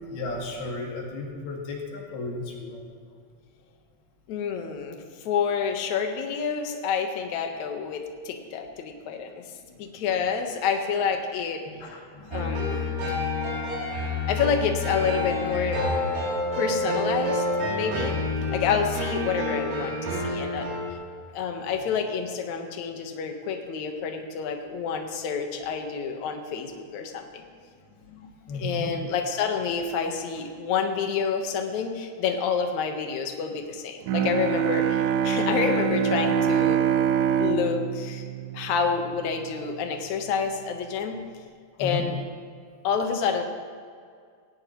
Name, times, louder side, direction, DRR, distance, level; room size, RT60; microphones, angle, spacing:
voice 1, 0.1-2.8 9.0-9.2 9.7-9.8 11.7-12.9 28.0-28.9 41.8-42.1, left 3 dB, 75° left, -1 dB, 4.2 m, -35 dB
voice 2, 4.3-9.4 9.8-11.7 12.3-13.2 14.3-15.8 16.6-17.4 17.7-18.1 18.5-20.7 21.3-27.4 28.5-36.8 37.4-38.3 38.5-41.2 41.8-42.2 42.8-43.4, left 6 dB, 60° left, 4 dB, 2.2 m, -28 dB
sound 1, 12.3-20.9, left 2 dB, 60° right, 3.7 m, -28 dB
Bowed string instrument, 34.1-39.3, right 7 dB, 80° right, 2.1 m, -25 dB
19.0 x 17.0 x 3.1 m, 2.2 s
omnidirectional pair, 4.5 m